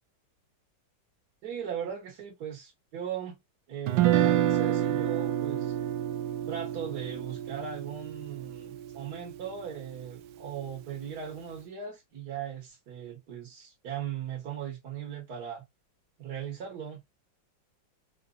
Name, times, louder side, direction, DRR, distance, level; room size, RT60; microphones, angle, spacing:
voice 1, 1.4-3.4 3.7-5.7 6.5-15.6 16.2-17.0, right 8 dB, 60° right, 1.6 m, -38 dB
Guitar, 3.9-10.0, right 12 dB, 90° right, 1.3 m, -29 dB
4.7 x 4.0 x 2.3 m
omnidirectional pair, 2.0 m